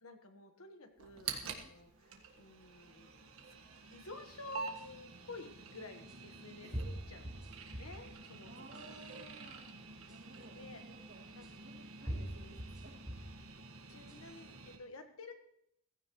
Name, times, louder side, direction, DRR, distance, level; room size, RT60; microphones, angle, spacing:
voice 1, 0.0-3.3 3.9-9.0 10.5-10.8 11.3-11.5 12.0-12.2 13.9-15.3, left 2 dB, 70° left, 6 dB, 1.5 m, -51 dB
sound 1, 1.0-14.8, right 4 dB, 70° right, 1.7 m, -49 dB
sound 2, 4.7-4.8 6.1-6.2 6.7-8.0 8.6-9.1 10.1-10.2 11.4-11.5 12.1-13.4 13.9-14.4, equal, 5° right, 5.5 m, -43 dB
voice 2, 8.5-9.6 10.0-11.2 11.5-13.1, right 1 dB, 50° right, -1 dB, 3.2 m, -57 dB
15.5 x 15.5 x 3.2 m, 0.73 s
head